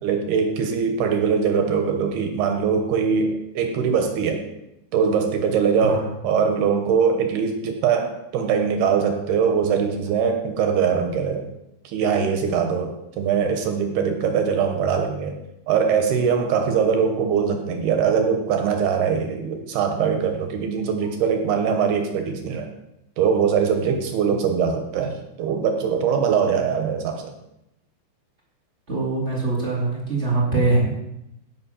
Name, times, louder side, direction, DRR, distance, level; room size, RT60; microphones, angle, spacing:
voice 1, 0.0-4.5 4.9-11.5 11.8-15.4 15.7-22.7 23.2-27.3, right 6 dB, 70° right, 5 dB, 2.7 m, -22 dB
voice 2, 28.9-31.0, right 3 dB, 25° right, -4 dB, 1.4 m, -22 dB
16.0 x 6.1 x 5.8 m, 0.87 s
omnidirectional pair, 5.4 m